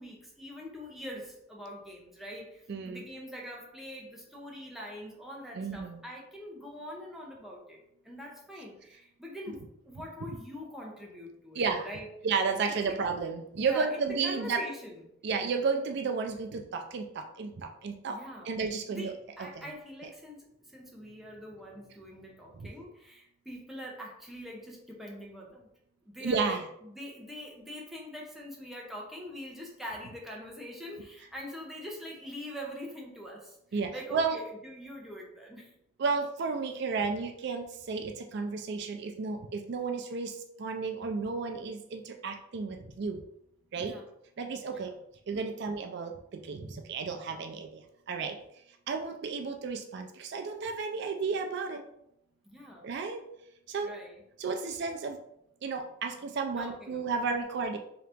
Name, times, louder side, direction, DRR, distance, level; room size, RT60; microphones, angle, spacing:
voice 1, 0.0-7.8 8.0-12.1 12.9-13.0 13.6-15.0 18.1-18.5 18.9-20.4 20.6-25.7 26.1-35.7 43.8-44.0 44.7-44.9 52.4-52.9 53.8-54.2 56.6-57.2, equal, ahead, -2 dB, 0.7 m, -43 dB
voice 2, 2.7-3.0 5.6-6.0 11.5-11.9 12.2-14.6 15.2-18.2 18.4-19.1 19.6-19.7 22.5-22.7 26.2-26.6 33.7-34.3 36.0-43.2 43.7-44.0 44.4-44.9 45.3-48.4 48.9-51.8 52.8-53.2 53.7-53.9 54.4-55.2 55.6-57.8, right 4 dB, 60° right, 4 dB, 0.4 m, -32 dB
3.8 x 2.9 x 3.4 m, 0.77 s
head